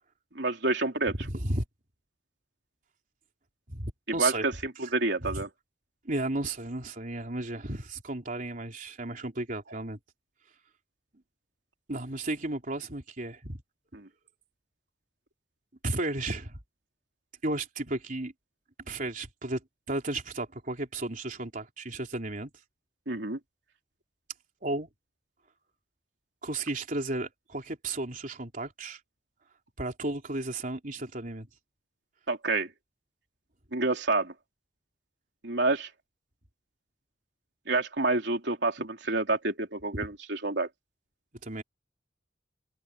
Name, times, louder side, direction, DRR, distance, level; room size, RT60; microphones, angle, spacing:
voice 1, 0.4-1.1 4.2-5.5 13.9-14.1 23.1-23.4 32.3-32.7 33.7-34.3 35.4-35.9 37.7-40.7, right 3 dB, 70° right, 3.7 m, -28 dB
voice 2, 1.1-1.6 3.7-4.4 5.2-5.4 6.0-10.0 11.9-13.6 15.8-16.6 17.4-18.3 18.9-19.6 19.9-22.5 24.6-24.9 26.4-29.0 29.8-31.5 41.4-41.6, right 2 dB, 45° right, 3.7 m, -33 dB
head